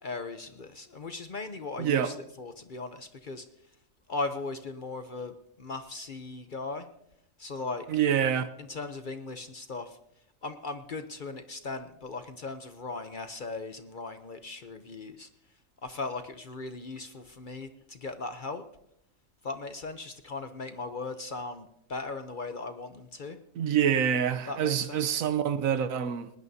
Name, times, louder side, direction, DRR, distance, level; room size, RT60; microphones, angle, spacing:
voice 1, 0.0-3.5 4.1-6.9 7.4-7.9 8.6-10.0 10.4-15.3 15.8-18.7 19.4-23.4 24.5-25.0, left 3 dB, 45° left, 0.8 m, -38 dB
voice 2, 1.8-2.1 7.9-8.5 23.6-26.3, right 8 dB, 75° right, 1.2 m, -26 dB
19.5 x 19.0 x 2.7 m
omnidirectional pair, 1.4 m